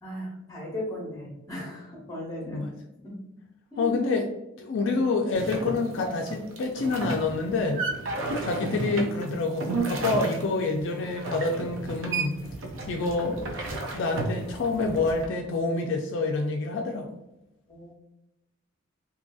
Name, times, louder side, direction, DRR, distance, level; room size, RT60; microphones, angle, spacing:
voice 1, 0.0-2.7 3.0-3.2 3.7-4.2 17.7-17.9, left 1 dB, 15° left, -3 dB, 0.8 m, -37 dB
voice 2, 3.8-4.3 4.6-7.8 8.4-12.4 12.9-13.4 13.9-17.1, left 3 dB, 65° left, 2 dB, 0.3 m, -27 dB
sound 1, 5.3-15.3, right 3 dB, 75° right, 0.5 m, -33 dB
2.7 x 2.6 x 2.2 m, 0.90 s
head